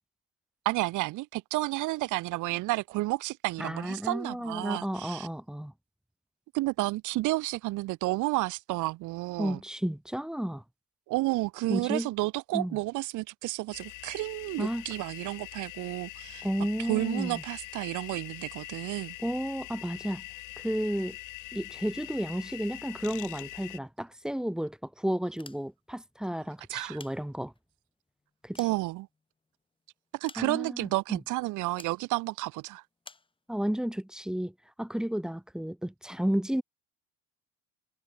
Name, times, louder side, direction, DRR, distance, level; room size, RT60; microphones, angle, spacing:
voice 1, 0.6-5.3 6.5-9.6 11.1-16.5 16.9-19.1 26.7-27.0 28.6-29.1 30.2-32.8, right 20 dB, 65° right, 1.4 m, -31 dB
voice 2, 3.6-5.7 9.4-10.6 11.7-12.1 12.5-12.8 14.6-14.8 16.4-17.4 19.2-20.2 20.6-21.2 21.5-27.5 28.4-28.6 30.4-31.2 33.5-34.5 34.8-36.6, equal, ahead, 1.8 m, -32 dB
sound 1, 13.7-23.8, left 19 dB, 65° left, 3.2 m, -44 dB
sound 2, 25.3-26.0 26.7-27.7 28.2-29.5 30.2-30.9 31.8-32.0 33.0-33.3, left 4 dB, 15° left, 6.3 m, -51 dB
cardioid pair, 150°, 33 cm